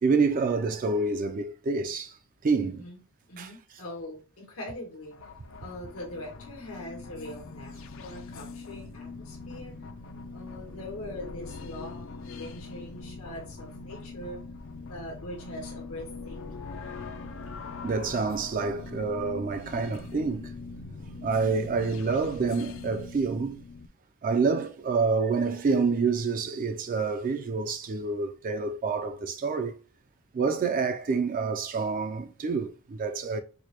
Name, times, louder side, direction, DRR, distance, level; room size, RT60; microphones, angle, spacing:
voice 1, 0.0-2.1 2.4-2.7 3.4-3.5 17.8-20.5 21.2-23.6 24.2-29.7 30.3-33.4, right 4 dB, 40° right, 0.3 m, -27 dB
voice 2, 2.6-3.0 3.3-5.1 5.6-9.7 10.3-14.4 14.9-16.4, left 1 dB, 85° left, 1.4 m, -42 dB
sound 1, 5.0-23.9, left 3 dB, 65° left, 0.4 m, -42 dB
4.7 x 2.1 x 2.9 m
head